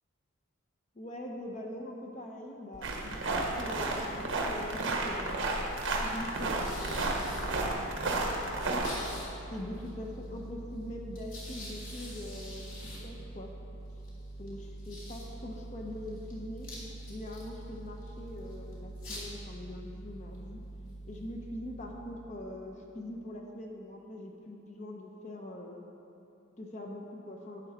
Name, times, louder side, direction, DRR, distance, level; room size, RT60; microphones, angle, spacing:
voice 1, 0.9-5.6 6.0-7.5 8.0-8.8 9.5-12.7 13.0-13.5 14.4-16.7 17.1-20.6 21.1-25.8 26.6-27.6, left 1 dB, 35° left, 1 dB, 0.8 m, -43 dB
sound 1, 2.7-22.6, right 1 dB, 70° left, 2.9 m, -45 dB
sound 2, 2.8-8.9, right 2 dB, 60° right, 1.3 m, -32 dB
12.0 x 9.0 x 4.3 m, 2.8 s
head